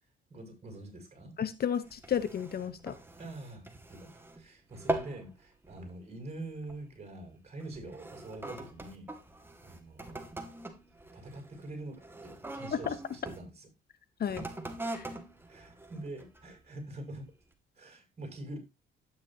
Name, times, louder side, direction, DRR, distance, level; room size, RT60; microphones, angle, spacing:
voice 1, 0.3-1.4 3.2-9.1 9.6-10.3 11.1-13.7 15.5-17.3 17.8-18.6, right 2 dB, 35° right, 3 dB, 6.9 m, -45 dB
voice 2, 1.4-2.9 14.2-14.5 14.9-15.1, left 8 dB, 50° left, 14 dB, 1.0 m, -32 dB
sound 1, 1.8-4.4 4.7-5.3 5.6-6.0 6.6-6.9 7.6-13.4 14.2-16.6 17.1-17.2, right 1 dB, 10° right, 2.2 m, -41 dB
11.5 x 9.8 x 2.8 m, 0.23 s
cardioid pair, 90°, 20 cm